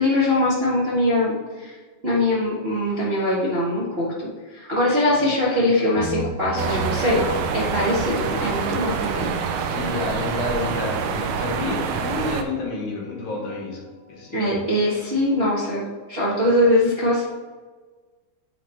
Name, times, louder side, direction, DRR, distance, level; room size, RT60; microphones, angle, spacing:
voice 1, 0.0-1.7 2.0-4.1 4.5-9.3 14.3-15.8 16.1-17.3, left 1 dB, 35° right, -8 dB, 1.0 m, -22 dB
sound 1, 5.9-15.5, right 1 dB, 40° left, 2.1 m, -35 dB
sound 2, 6.6-12.4, right 6 dB, 80° right, 1.4 m, -27 dB
voice 2, 9.7-13.8 14.1-14.6, left 3 dB, 75° left, -3 dB, 2.9 m, -30 dB
9.8 x 3.9 x 4.3 m, 1.4 s
omnidirectional pair, 3.4 m